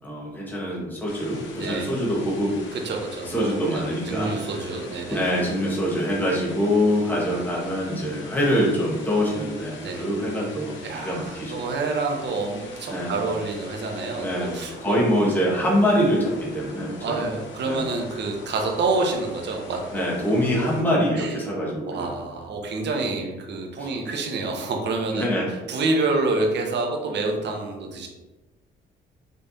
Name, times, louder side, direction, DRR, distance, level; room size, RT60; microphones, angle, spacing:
voice 1, 0.0-2.5 3.2-4.5 5.1-11.6 12.9-13.3 14.1-17.2 17.6-17.8 19.9-22.1 23.8-23.9 25.1-25.5, equal, 10° left, -5 dB, 1.4 m, -24 dB
sound 1, 1.1-20.8, left 3 dB, 70° left, 1.0 m, -43 dB
voice 2, 1.6-1.9 2.7-5.2 9.8-10.0 10.8-14.9 15.5-15.6 17.0-20.1 20.6-20.7 21.1-21.3 21.8-25.3 25.7-28.1, right 3 dB, 60° right, 2 dB, 0.9 m, -27 dB
5.3 x 3.2 x 2.8 m, 1.1 s
cardioid pair, 90°, 20 cm